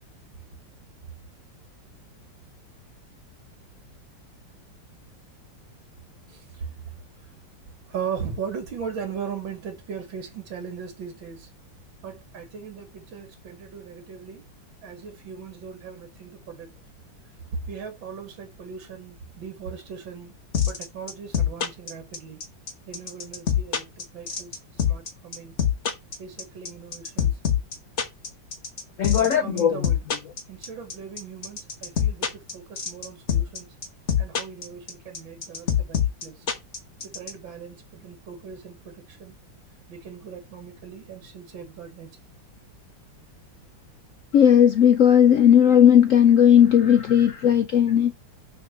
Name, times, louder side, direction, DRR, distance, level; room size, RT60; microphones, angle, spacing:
voice 1, 6.3-7.0 7.2-7.3 7.9-11.5 12.0-14.5 14.8-16.7 17.6-20.3 20.6-22.4 22.9-24.6 24.9-25.5 26.2-27.4 29.0-30.1 30.5-33.7 34.2-36.5 37.0-39.4 39.9-42.2, right 7 dB, 80° right, 2.4 m, -38 dB
sound 1, 20.5-37.3, left 9 dB, 40° left, 1.4 m, -24 dB
voice 2, 29.0-29.9 44.3-48.1, left 9 dB, 85° left, 0.7 m, -16 dB
6.1 x 4.2 x 6.0 m
omnidirectional pair, 2.1 m